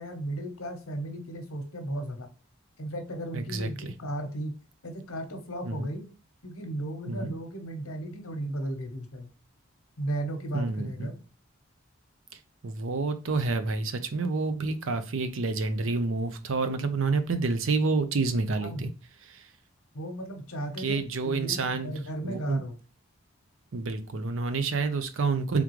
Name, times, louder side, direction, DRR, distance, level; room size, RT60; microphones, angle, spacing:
voice 1, 0.0-2.3 2.8-4.5 4.8-6.1 6.4-9.3 10.0-11.2 18.5-18.9 19.9-22.8, right 1 dB, 80° left, 5 dB, 1.0 m, -35 dB
voice 2, 3.3-3.9 5.6-5.9 7.1-7.3 10.5-11.1 12.6-18.9 19.2-19.5 20.8-21.9 22.2-22.6 23.7-25.6, right 3 dB, 65° right, 10 dB, 0.5 m, -29 dB
3.6 x 3.5 x 3.0 m, 0.34 s
head